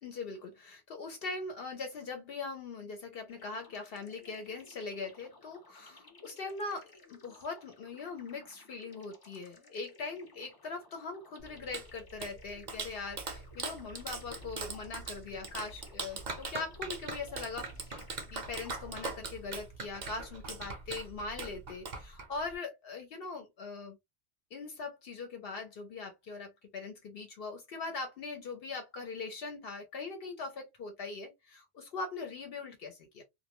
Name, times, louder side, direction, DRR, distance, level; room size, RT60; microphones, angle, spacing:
voice 1, 0.0-17.9 18.3-24.0 24.5-33.2, left 4 dB, 65° left, 0.8 m, -41 dB
sound 1, 3.3-19.7, left 3 dB, 30° left, 0.5 m, -58 dB
Clapping, 11.4-22.5, right 4 dB, 50° right, 0.7 m, -41 dB
2.2 x 2.1 x 2.9 m
omnidirectional pair, 1.1 m